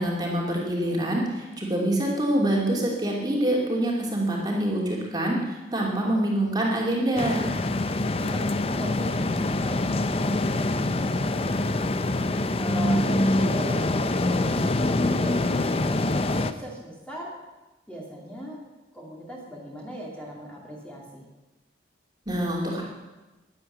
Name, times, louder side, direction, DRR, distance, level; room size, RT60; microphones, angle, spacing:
voice 1, 0.0-7.5 22.3-22.8, right 1 dB, 20° right, -2 dB, 2.6 m, -25 dB
voice 2, 5.9-6.3 8.0-11.9 12.5-17.3 17.9-18.6 18.9-21.2, equal, 5° left, -3 dB, 2.5 m, -39 dB
sound 1, 7.2-16.5, left 2 dB, 30° left, 0.6 m, -25 dB
11.5 x 10.5 x 8.0 m, 1.1 s
head